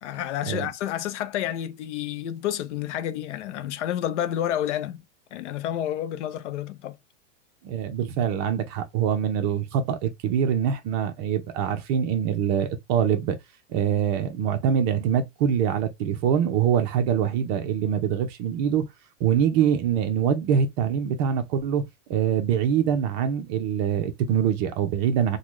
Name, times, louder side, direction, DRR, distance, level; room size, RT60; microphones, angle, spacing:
voice 1, 0.0-5.0 5.3-7.0, left 11 dB, 70° left, 0.7 m, -29 dB
voice 2, 7.6-13.4 13.7-18.8 19.2-21.8 22.1-25.4, right 8 dB, 35° right, 0.7 m, -24 dB
3.7 x 2.3 x 3.1 m
supercardioid pair, 170°, 37 cm